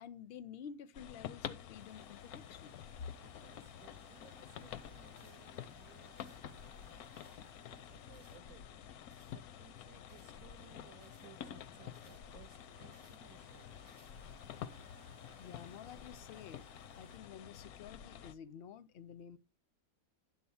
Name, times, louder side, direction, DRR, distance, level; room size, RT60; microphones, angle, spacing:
voice 1, 0.0-3.1 14.8-14.9 15.4-16.6 16.9-19.4, left 7 dB, 60° left, 0.6 m, -50 dB
sound 1, 0.9-18.3, left 10 dB, 85° left, 1.1 m, -50 dB
sound 2, 1.8-17.2, right 6 dB, 45° right, 1.1 m, -66 dB
voice 2, 3.3-7.0 7.7-8.7 9.3-13.9, right 11 dB, 75° right, 1.0 m, -62 dB
sound 3, 5.1-5.4 6.2-6.4 7.1-7.4 8.1-8.4 9.1-9.4 10.1-10.3 11.0-11.3 11.9-12.2 12.9-13.2 13.8-14.1, right 2 dB, 25° right, 0.5 m, -68 dB
10.5 x 3.8 x 7.0 m
omnidirectional pair, 1.5 m